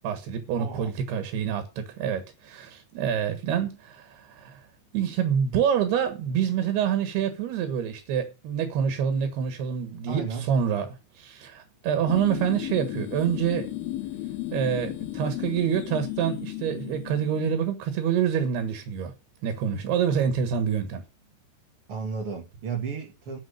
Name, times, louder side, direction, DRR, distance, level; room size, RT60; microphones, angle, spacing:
voice 1, 0.0-4.7 4.9-13.7 14.5-19.1 19.4-21.0, right 8 dB, 70° right, 3.4 m, -27 dB
voice 2, 0.6-0.9 10.1-10.5 21.9-23.4, right 5 dB, 50° right, 1.8 m, -33 dB
sound 1, 12.1-17.5, left 14 dB, 75° left, 2.5 m, -34 dB
9.9 x 7.9 x 6.7 m
omnidirectional pair, 5.1 m